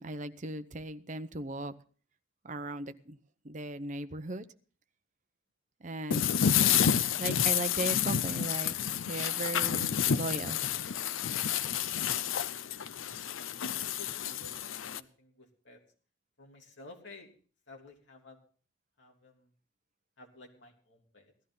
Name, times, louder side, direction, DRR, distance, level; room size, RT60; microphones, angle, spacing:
voice 1, 0.0-1.7 2.4-3.2 3.4-4.5 5.8-6.2 7.2-8.7 9.1-10.6, right 2 dB, 40° right, 11 dB, 0.7 m, -37 dB
sound 1, 6.1-15.0, left 8 dB, 90° left, 0.6 m, -29 dB
voice 2, 13.6-15.8 16.4-17.3 17.7-18.4 19.0-19.5 20.2-21.3, left 2 dB, 65° left, 1 dB, 3.2 m, -53 dB
17.0 x 12.0 x 3.8 m, 0.41 s
head